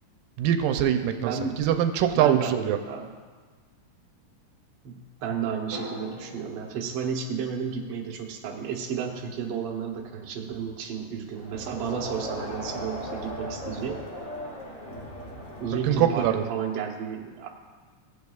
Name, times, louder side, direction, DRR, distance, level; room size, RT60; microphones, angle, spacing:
voice 1, 0.4-2.8 15.8-16.5, right 10 dB, 85° right, 7 dB, 2.2 m, -23 dB
voice 2, 1.2-1.7 2.1-3.1 4.8-14.0 15.6-17.5, right 6 dB, 65° right, 0 dB, 1.7 m, -32 dB
sound 1, 5.7-9.7 9.9-10.0, left 1 dB, 25° right, 2.0 m, -46 dB
Crowd, 11.3-16.5, equal, 55° left, 0.5 m, -37 dB
16.5 x 8.3 x 2.3 m, 1.4 s
omnidirectional pair, 3.8 m